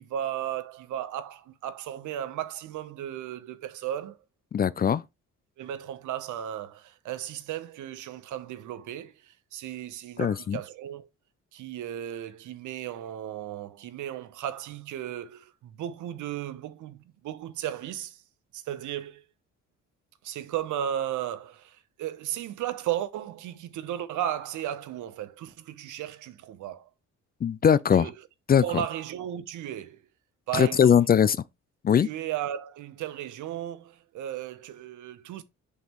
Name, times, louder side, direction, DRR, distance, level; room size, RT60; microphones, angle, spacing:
voice 1, 0.0-4.2 5.6-11.1 11.5-18.2 18.5-19.2 20.2-26.9 27.9-28.1 28.6-30.0 30.5-31.0 32.0-35.4, right 11 dB, 80° right, 0.8 m, -35 dB
voice 2, 4.5-5.0 10.2-10.6 27.4-28.1 28.5-28.8 30.5-31.4 31.8-32.1, left 8 dB, 30° left, 0.4 m, -21 dB
6.3 x 5.3 x 3.0 m
cardioid pair, 90°, 30 cm